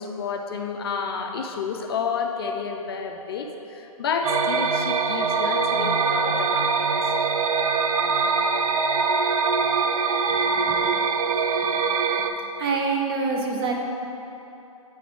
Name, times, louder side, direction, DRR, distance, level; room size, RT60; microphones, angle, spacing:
voice 1, 0.0-7.1, left 5 dB, 40° left, 4 dB, 0.4 m, -30 dB
sound 1, 4.2-12.3, right 4 dB, 70° right, 0.4 m, -23 dB
voice 2, 10.4-10.9 12.6-13.7, right 4 dB, 40° right, 1 dB, 0.8 m, -26 dB
8.5 x 3.6 x 3.4 m, 3.0 s
figure-of-eight pair, 125°, 19 cm